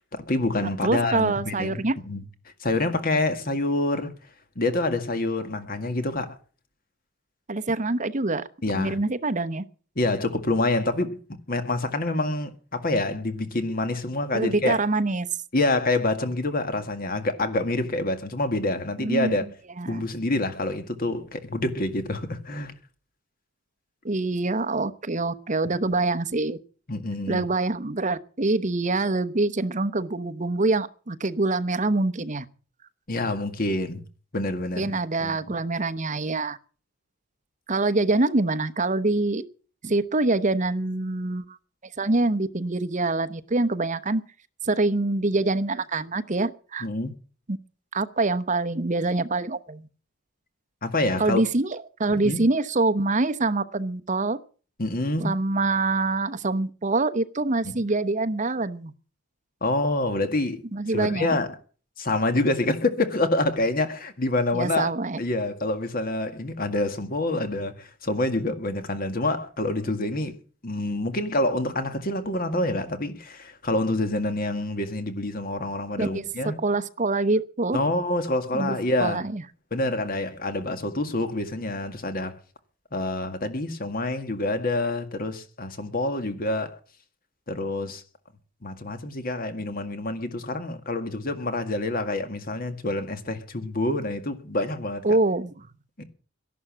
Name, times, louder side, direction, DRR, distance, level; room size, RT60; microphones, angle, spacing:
voice 1, 0.1-2.3 2.6-4.1 4.6-6.4 8.6-9.0 10.0-14.8 15.5-19.4 19.9-22.8 25.8-25.9 26.9-27.5 33.1-34.0 34.3-34.9 35.2-35.5 46.8-47.1 50.8-51.4 52.1-52.4 54.8-55.3 57.6-57.7 59.6-60.6 60.9-61.6 62.0-64.9 65.2-70.4 70.6-76.6 77.7-79.2 79.7-82.4 82.9-86.8 87.5-88.0 88.6-95.0 96.0-96.1, left 2 dB, 45° left, 1.9 m, -27 dB
voice 2, 0.6-1.9 7.5-8.5 8.7-9.6 14.3-15.3 19.0-19.4 19.8-20.1 24.0-26.6 27.3-32.4 34.8-36.6 37.7-39.4 39.8-41.6 42.0-44.2 44.6-46.9 47.5-47.6 47.9-49.9 51.2-54.4 55.2-58.9 60.7-61.3 64.5-65.2 76.0-76.3 76.6-77.8 78.5-79.4 95.0-95.5, right 2 dB, 35° right, 0.9 m, -25 dB
13.0 x 11.5 x 7.4 m
head